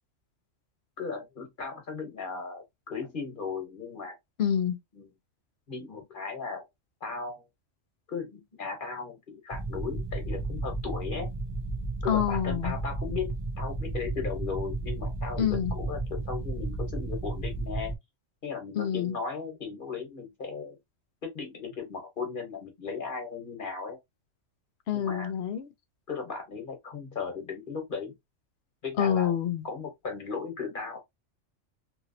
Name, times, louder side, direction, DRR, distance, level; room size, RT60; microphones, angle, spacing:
voice 1, 1.0-4.2 5.0-5.1 5.7-6.7 7.0-7.4 8.1-11.4 12.0-17.9 18.4-20.8 21.2-24.0 24.9-25.3 26.1-28.1 28.8-29.3 29.6-31.0, left 5 dB, 45° left, 1.1 m, -36 dB
voice 2, 4.4-4.8 12.1-12.7 15.4-15.7 18.8-19.2 24.9-25.7 29.0-29.7, left 9 dB, 65° left, 0.7 m, -27 dB
sound 1, 9.5-18.0, right 2 dB, 35° right, 0.4 m, -33 dB
3.0 x 2.6 x 2.7 m
omnidirectional pair, 1.3 m